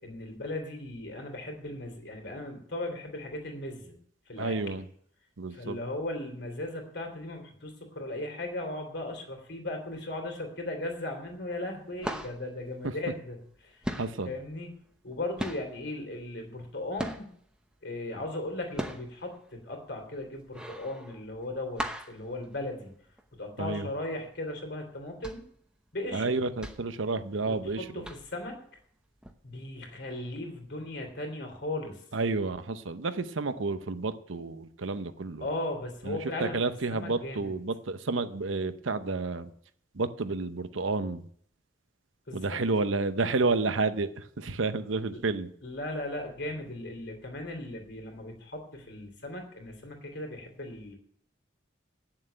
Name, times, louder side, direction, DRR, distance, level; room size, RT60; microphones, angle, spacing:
voice 1, 0.0-3.9 4.3-4.8 5.5-13.8 14.3-14.7 15.0-17.3 17.8-23.0 23.3-25.4 25.9-26.4 27.4-28.6 29.4-32.0 35.4-36.6 36.9-37.5 42.3-42.6 45.1-45.2 45.6-50.9, left 1 dB, 60° left, 3 dB, 3.1 m, -37 dB
voice 2, 4.4-4.8 5.4-5.8 12.8-12.9 14.0-14.3 23.6-23.9 26.1-28.1 32.1-35.5 36.0-39.5 39.9-41.2 42.3-45.5, right 3 dB, 85° right, 11 dB, 0.8 m, -30 dB
sound 1, 10.9-11.4 11.6-13.6 13.8-17.6 18.0-23.3 23.7-23.8 24.1-24.4 24.9-27.7 28.0-28.5 29.2-29.3, equal, 5° right, 0.8 m, -39 dB
9.0 x 7.3 x 9.1 m, 0.63 s
head